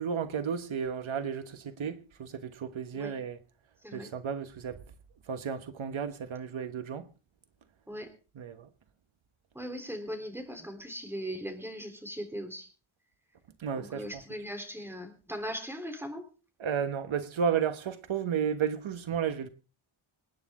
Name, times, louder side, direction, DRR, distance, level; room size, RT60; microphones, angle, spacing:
voice 1, 0.0-3.4 3.9-4.8 5.3-7.1 8.3-8.7 13.6-14.0 16.6-19.5, right 7 dB, 75° right, 1.3 m, -33 dB
voice 2, 9.5-12.7 13.7-16.2, equal, 5° right, 3.7 m, -39 dB
27.5 x 9.5 x 3.7 m
wide cardioid pair, 130°, 48 cm